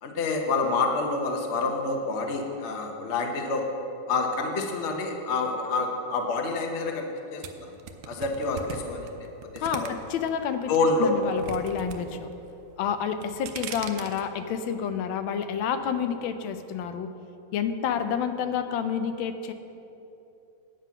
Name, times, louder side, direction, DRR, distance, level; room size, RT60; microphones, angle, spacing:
voice 1, 0.0-3.7 4.1-7.7 8.1-9.1 9.5-9.9 10.7-11.1, left 3 dB, 45° left, 3 dB, 1.0 m, -27 dB
sound 1, 7.4-10.3 10.7-12.0 12.2-12.7 13.1-14.2, right 7 dB, 75° right, 1.3 m, -38 dB
voice 2, 9.6-10.7 11.0-12.3 12.8-17.1 17.5-19.5, left 7 dB, 90° left, 9 dB, 1.4 m, -29 dB
9.1 x 7.7 x 5.7 m, 2.9 s
omnidirectional pair, 2.1 m